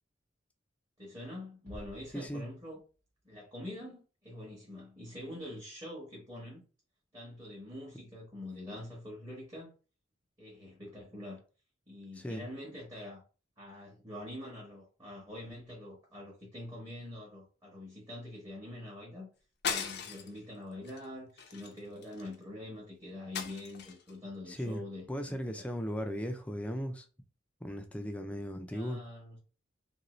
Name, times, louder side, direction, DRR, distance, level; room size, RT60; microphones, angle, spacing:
voice 1, 1.0-2.8 3.2-6.6 7.1-9.7 10.4-11.4 11.9-13.2 13.6-19.3 19.7-25.6 28.7-29.4, left 1 dB, 20° right, 1.0 m, -45 dB
sound 1, 1.7-3.6, equal, 50° right, 0.6 m, -53 dB
voice 2, 2.1-2.4 12.2-12.4 24.5-24.8 25.1-27.1 27.6-29.0, equal, 5° left, 0.4 m, -37 dB
sound 2, 19.6-20.4 20.8-21.0 21.4-22.3 23.3-24.1, left 6 dB, 55° left, 0.5 m, -38 dB
2.9 x 2.6 x 3.0 m
head